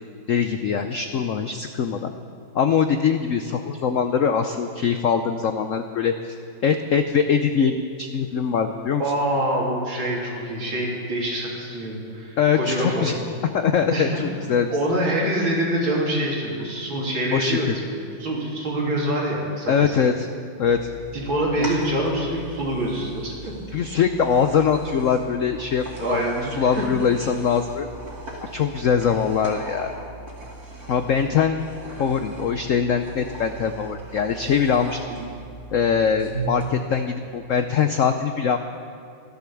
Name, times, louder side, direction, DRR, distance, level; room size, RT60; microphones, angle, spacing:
voice 1, 0.3-2.1 2.5-6.3 6.6-9.0 12.4-13.2 13.5-14.7 17.3-17.8 19.7-20.3 20.6-20.9 21.6-21.7 23.7-27.9 28.4-29.9 30.9-31.6 32.0-35.0 35.7-38.6, left 7 dB, 90° left, 7 dB, 0.6 m, -22 dB
voice 2, 9.0-13.1 13.9-14.3 14.7-19.9 21.1-23.3 26.0-26.8 35.1-35.3, right 1 dB, 80° right, -3 dB, 3.5 m, -25 dB
sound 1, 20.6-36.7, right 3 dB, 50° right, 3.1 m, -38 dB
14.0 x 12.0 x 7.0 m, 2.5 s
omnidirectional pair, 2.1 m